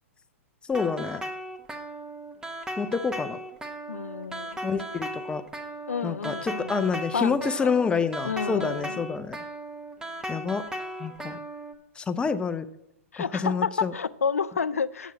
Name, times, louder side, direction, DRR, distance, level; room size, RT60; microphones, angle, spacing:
voice 1, 0.7-1.2 2.8-3.4 4.6-5.4 6.0-9.4 10.3-10.7 11.0-11.4 12.0-12.7 13.2-13.9, left 5 dB, 15° left, 11 dB, 0.6 m, -28 dB
sound 1, 0.7-11.7, right 1 dB, 10° right, 0.9 m, -37 dB
voice 2, 3.9-4.6 5.9-7.7 8.2-9.0 13.1-15.1, left 6 dB, 90° left, 17 dB, 0.4 m, -30 dB
8.1 x 6.5 x 6.1 m, 0.82 s
hypercardioid pair, 110°, 8 cm